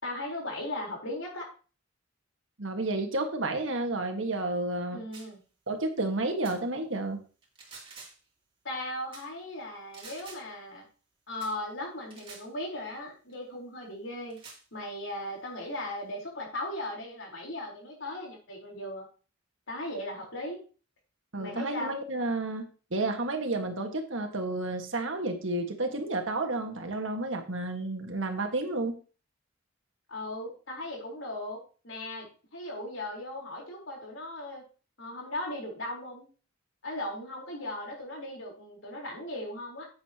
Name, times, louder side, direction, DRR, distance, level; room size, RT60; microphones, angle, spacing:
voice 1, 0.0-1.5 4.9-5.4 8.6-10.9 11.3-14.4 14.7-19.1 19.7-20.6 21.4-21.9 30.1-34.6 35.0-36.3 36.8-39.9, left 1 dB, 80° left, -1 dB, 4.2 m, -37 dB
voice 2, 2.6-5.0 5.7-7.2 21.3-22.6 22.9-29.0, right 2 dB, 80° right, 5 dB, 1.8 m, -31 dB
sound 1, 5.1-5.3 6.4-6.6 7.4-8.3 9.1-9.3 9.9-10.5 11.4-11.6 12.1-12.5 13.3-13.4 14.3-14.6, right 4 dB, 30° right, 3.0 m, -48 dB
10.5 x 8.7 x 3.0 m, 0.37 s
head